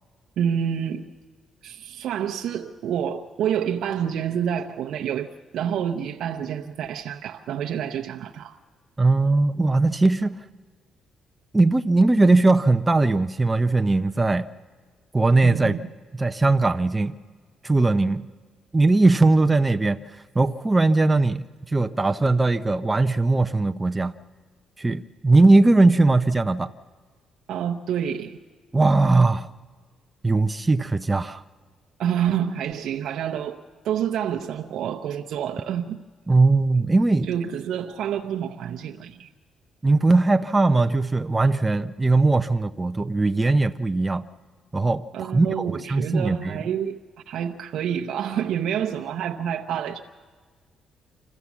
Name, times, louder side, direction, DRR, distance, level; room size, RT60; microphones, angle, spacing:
voice 1, 0.4-1.1 1.6-8.6 15.4-15.8 27.5-28.4 32.0-36.0 37.2-39.3 45.1-47.0 47.3-50.0, right 9 dB, 75° right, 0.7 m, -28 dB
voice 2, 9.0-10.4 11.5-14.5 15.1-15.8 16.2-17.2 17.6-18.3 18.7-24.1 24.8-26.7 28.7-29.5 30.2-31.4 36.3-37.3 39.8-44.2 44.7-46.6, right 2 dB, 20° right, 0.6 m, -20 dB
26.0 x 14.5 x 7.2 m
cardioid pair, 90°, 0 cm